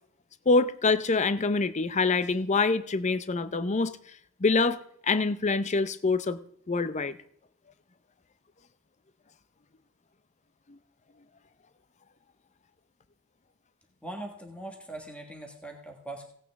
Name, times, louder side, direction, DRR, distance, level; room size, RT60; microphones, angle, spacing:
voice 1, 0.5-3.9 4.4-6.4 6.7-7.2 10.7-10.8, left 3 dB, 30° left, 14 dB, 0.5 m, -25 dB
voice 2, 14.0-16.2, right 2 dB, 5° left, 2 dB, 1.6 m, -41 dB
17.0 x 8.9 x 3.6 m, 0.67 s
head